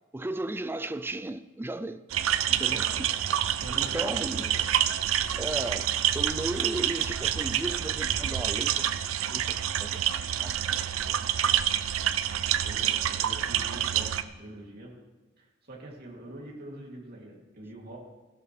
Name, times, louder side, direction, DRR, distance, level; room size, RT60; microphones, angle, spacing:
voice 1, 0.1-2.0 2.5-3.3 3.7-4.5 5.2-5.9 6.1-10.1 10.4-10.8 11.2-11.4, right 1 dB, 10° right, 0.4 m, -35 dB
sound 1, 2.1-14.2, right 10 dB, 85° right, 0.5 m, -28 dB
voice 2, 2.7-3.0 3.6-4.6 12.4-14.9 15.4-18.0, right 1 dB, 50° right, 2.7 m, -44 dB
15.0 x 12.0 x 3.3 m
head